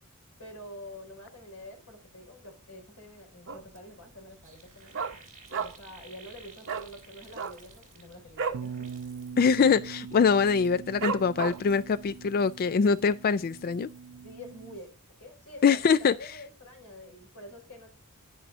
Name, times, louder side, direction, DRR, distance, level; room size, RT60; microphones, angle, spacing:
voice 1, 0.4-5.0 5.5-8.9 14.2-14.9 15.2-17.9, left 1 dB, 90° left, 5.0 m, -47 dB
Dog, 3.5-3.9 4.2-4.3 4.5-6.0 6.2-6.4 6.6-6.9 7.3-8.7 9.0-9.2 9.5-9.9 10.3-10.4 11.0-11.8 12.3-12.4, right 5 dB, 55° right, 1.0 m, -33 dB
sound 1, 4.0-4.1 4.3-8.3 8.6-9.5 9.9-10.9 11.3-14.3 14.5-14.9, right 4 dB, 35° right, 3.6 m, -56 dB
Bass guitar, 8.5-14.8, right 6 dB, 85° right, 0.4 m, -43 dB
voice 2, 9.4-13.9 15.6-16.1, left 5 dB, 40° left, 0.3 m, -23 dB
10.0 x 10.0 x 2.5 m
head